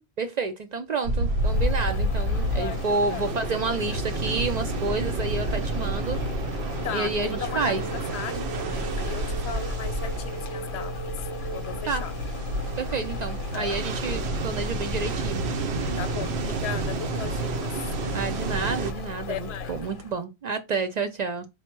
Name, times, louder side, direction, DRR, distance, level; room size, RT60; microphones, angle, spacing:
voice 1, 0.2-6.2 6.9-7.8 11.8-12.0 12.8-15.4 18.1-21.5, right 4 dB, 55° right, 0.5 m, -29 dB
sound 1, 1.0-18.9, right 2 dB, 75° right, 0.9 m, -30 dB
sound 2, 1.2-20.2, left 4 dB, 60° left, 0.7 m, -36 dB
voice 2, 2.5-3.2 6.8-10.9 11.5-12.1 13.5-13.8 16.0-17.7 19.3-19.8, left 9 dB, 90° left, 0.9 m, -37 dB
sound 3, 6.5-14.1, right 6 dB, ahead, 1.0 m, -42 dB
4.2 x 2.1 x 4.3 m
omnidirectional pair, 1.1 m